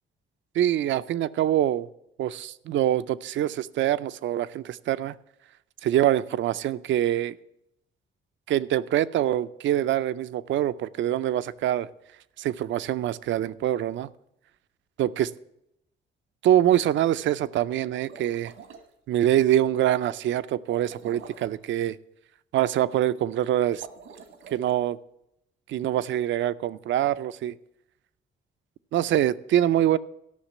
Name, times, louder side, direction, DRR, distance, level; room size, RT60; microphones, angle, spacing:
voice 1, 0.5-1.9 2.2-5.2 5.8-7.4 8.5-11.9 12.4-14.1 15.0-15.3 16.4-18.5 19.1-22.0 22.5-23.9 24.5-25.0 25.7-27.5 28.9-30.0, right 12 dB, 70° right, 15 dB, 0.5 m, -24 dB
sound 1, 17.9-18.9 20.7-21.6 23.7-24.8, right 6 dB, 90° right, 1.3 m, -46 dB
13.5 x 5.8 x 7.5 m, 0.82 s
cardioid pair, 90°, 20 cm